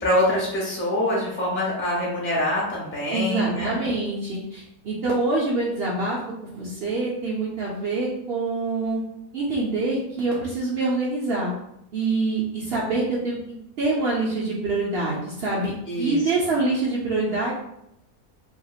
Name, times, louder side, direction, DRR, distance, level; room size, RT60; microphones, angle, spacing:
voice 1, 0.0-3.7 15.9-16.2, left 1 dB, 20° left, -5 dB, 0.3 m, -24 dB
voice 2, 3.1-9.0 9.3-11.5 11.9-13.4 13.8-17.5, right 3 dB, 75° right, -5 dB, 0.5 m, -25 dB
2.8 x 2.8 x 2.3 m, 0.78 s
omnidirectional pair, 1.8 m